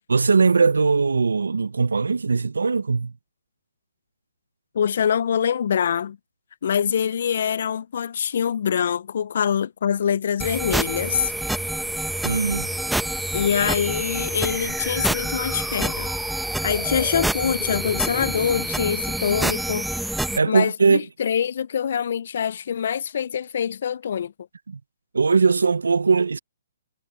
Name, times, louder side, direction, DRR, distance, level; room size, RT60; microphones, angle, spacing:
voice 1, 0.1-3.1 12.2-12.7 20.4-21.0 24.7-24.8 25.1-26.4, right 4 dB, 90° right, 0.5 m, -20 dB
voice 2, 4.7-6.2 6.6-11.3 13.3-16.1 16.6-19.9 20.5-24.3, left 8 dB, 60° left, 0.3 m, -24 dB
sound 1, 10.4-20.4, right 1 dB, ahead, 1.0 m, -27 dB
hypercardioid pair, 145°, 0 cm